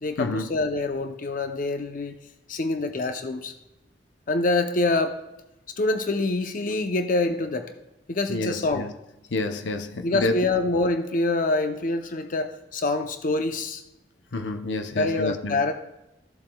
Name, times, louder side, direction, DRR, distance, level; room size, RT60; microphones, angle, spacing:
voice 1, 0.0-2.2 2.5-3.5 4.3-5.2 5.8-7.7 8.1-8.8 10.0-13.8 14.9-15.7, left 2 dB, 50° left, 0.6 m, -25 dB
voice 2, 8.3-8.9 9.3-10.4 14.3-15.6, left 2 dB, 90° left, 0.7 m, -29 dB
14.5 x 7.4 x 2.3 m
head